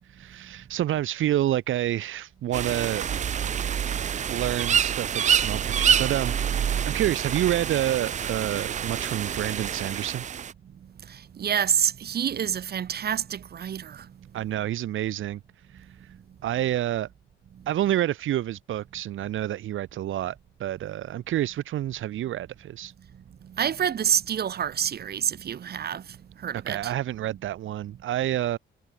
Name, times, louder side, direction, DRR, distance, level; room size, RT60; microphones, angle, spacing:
voice 1, 0.1-3.1 4.3-6.4 6.8-10.2 14.3-15.4 15.7-16.1 16.4-17.1 17.7-22.9 26.7-28.6, right 12 dB, 85° right, 3.3 m, -28 dB
sound 1, 2.5-10.5, right 8 dB, 35° right, 0.5 m, -27 dB
voice 2, 11.4-14.1 23.6-26.0 26.4-26.9, right 8 dB, 50° right, 6.9 m, -27 dB
cardioid pair, 150°, 20 cm